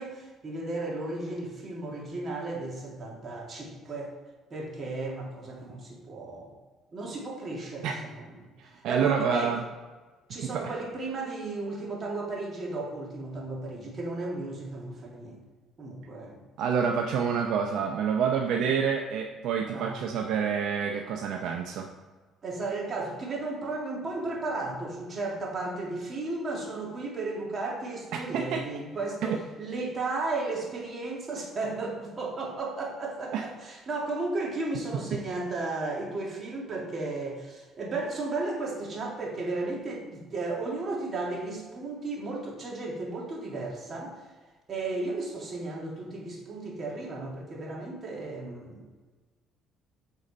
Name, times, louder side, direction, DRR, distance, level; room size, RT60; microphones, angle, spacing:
voice 1, 0.0-4.1 4.5-6.5 6.9-8.5 8.7-9.6 10.3-15.4 15.8-16.4 18.6-18.7 19.7-20.0 22.4-44.1 44.7-48.9, right 3 dB, 40° right, -2 dB, 2.2 m, -34 dB
voice 2, 8.6-9.6 10.5-10.7 16.6-21.9 28.3-28.6 29.2-29.4 33.3-33.4, right 6 dB, 75° right, 2 dB, 0.6 m, -28 dB
8.1 x 4.1 x 4.2 m, 1.3 s
supercardioid pair, 85°, 0 cm